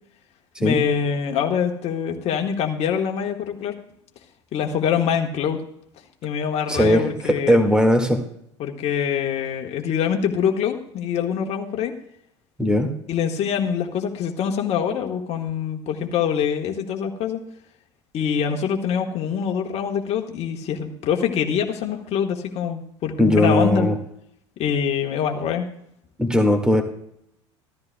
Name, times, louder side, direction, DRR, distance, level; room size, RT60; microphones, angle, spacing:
voice 1, 0.6-3.7 4.5-5.6 6.2-7.6 8.6-11.9 13.1-17.4 18.1-23.9 24.6-25.7, left 7 dB, 45° left, 3 dB, 1.4 m, -24 dB
voice 2, 6.7-8.2 12.6-12.9 23.2-24.0 26.2-26.8, left 1 dB, 5° right, 5 dB, 1.9 m, -18 dB
15.0 x 13.0 x 2.3 m, 0.74 s
hypercardioid pair, 70°, 15 cm